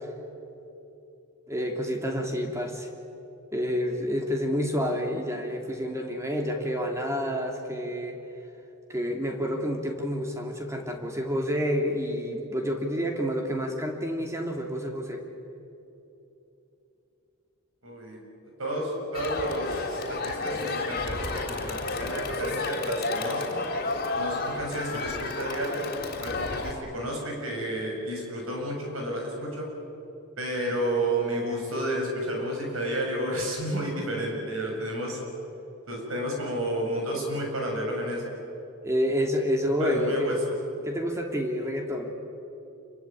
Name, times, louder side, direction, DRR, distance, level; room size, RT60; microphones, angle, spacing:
voice 1, 1.5-2.9 3.5-8.2 8.9-15.2 38.8-40.3 40.8-42.1, equal, 15° right, 2 dB, 2.9 m, -29 dB
voice 2, 17.8-18.2 18.6-23.6 24.1-25.8 26.2-29.7 30.4-35.2 35.9-38.2 39.8-40.4, right 1 dB, 65° right, 1 dB, 7.5 m, -31 dB
Crowd, 19.1-26.7, left 3 dB, 45° left, 3.5 m, -31 dB
28.0 x 23.0 x 9.0 m, 2.9 s
head